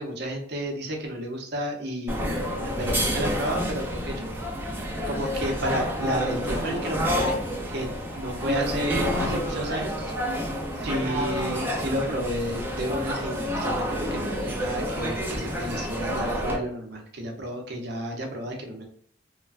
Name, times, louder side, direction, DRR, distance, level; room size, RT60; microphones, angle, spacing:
voice 1, 0.0-4.8 5.1-7.4 7.7-7.9 8.2-10.1 10.8-18.8, equal, 60° right, 1 dB, 0.7 m, -31 dB
sound 1, 2.1-16.6, equal, 10° right, 0.5 m, -29 dB
3.1 x 2.2 x 2.4 m, 0.62 s
head